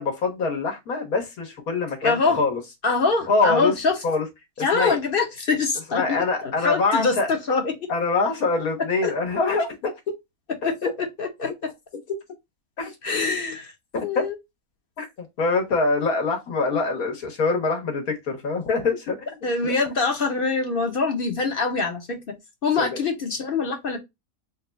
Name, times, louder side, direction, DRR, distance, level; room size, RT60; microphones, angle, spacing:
voice 1, 0.0-2.6 3.3-3.7 4.0-4.2 4.6-5.0 5.9-7.3 7.9-9.9 10.8-10.9 12.8-12.9 13.9-14.3 15.0-19.3 19.6-19.7 22.8-23.0, left 3 dB, 85° left, 1.7 m, -24 dB
voice 2, 2.0-2.4 2.8-4.0 4.6-7.9 9.0-9.1 10.6-10.7 11.0-11.5 13.0-13.7 14.0-14.3 19.4-22.2 22.6-24.0, left 4 dB, 50° left, 0.8 m, -24 dB
3.9 x 2.3 x 3.9 m
omnidirectional pair, 1.5 m